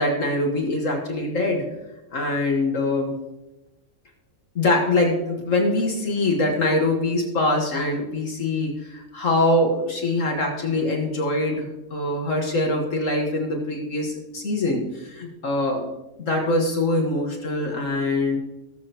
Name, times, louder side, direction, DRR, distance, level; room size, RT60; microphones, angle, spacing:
voice 1, 0.0-1.7 2.1-3.1 4.6-11.6 11.9-15.9 16.2-18.4, left 2 dB, 60° left, 1 dB, 1.9 m, -23 dB
18.5 x 7.4 x 3.0 m, 0.96 s
omnidirectional pair, 1.5 m